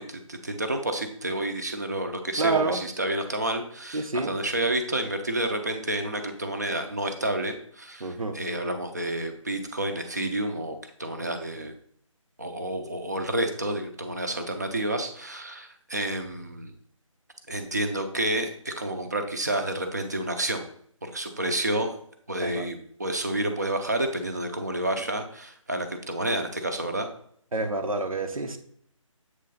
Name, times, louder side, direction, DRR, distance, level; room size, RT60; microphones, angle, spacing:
voice 1, 0.0-11.7 12.4-16.7 17.5-20.6 21.0-21.9 22.3-27.1, right 1 dB, 30° right, 6 dB, 0.6 m, -30 dB
voice 2, 2.4-2.8 3.9-4.3 8.0-8.4 22.4-22.7 27.5-28.6, right 3 dB, 85° right, 7 dB, 0.9 m, -28 dB
7.5 x 3.2 x 3.9 m, 0.63 s
figure-of-eight pair, 180°, 17 cm